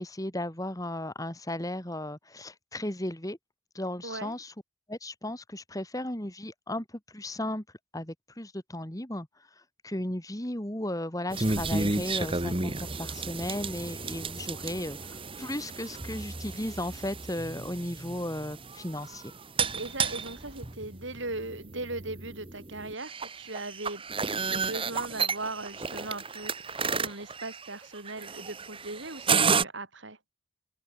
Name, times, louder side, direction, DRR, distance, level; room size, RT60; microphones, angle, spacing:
voice 1, 0.0-3.4 3.7-4.5 4.9-6.8 7.1-7.6 7.9-9.3 9.8-19.3, left 1 dB, 15° left, 2.2 m, -35 dB
voice 2, 4.0-4.4 19.6-24.0 24.4-30.3, right 2 dB, 60° right, 4.8 m, -39 dB
sound 1, 11.3-29.6, right 4 dB, 25° right, 1.6 m, -32 dB
open air
head